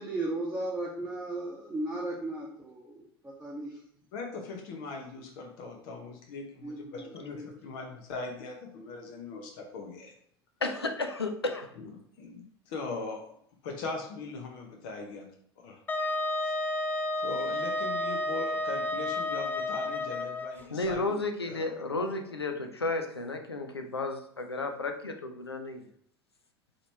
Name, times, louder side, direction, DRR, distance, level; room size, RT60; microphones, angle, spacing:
voice 1, 0.0-3.7 6.6-7.4, right 2 dB, 10° right, -6 dB, 0.9 m, -36 dB
voice 2, 4.1-10.1 11.8-11.9 12.2-13.2 13.6-15.3 15.6-15.8 16.4-16.5 17.2-21.2 21.5-21.7 22.0-22.1, left 3 dB, 55° left, 2 dB, 0.8 m, -40 dB
voice 3, 10.6-11.7 20.7-25.8, left 2 dB, 85° left, 5 dB, 0.4 m, -33 dB
Wind instrument woodwind instrument, 15.9-20.6, left 2 dB, 15° left, 0.4 m, -31 dB
3.9 x 3.1 x 3.2 m, 0.64 s
figure-of-eight pair, 75°, 13 cm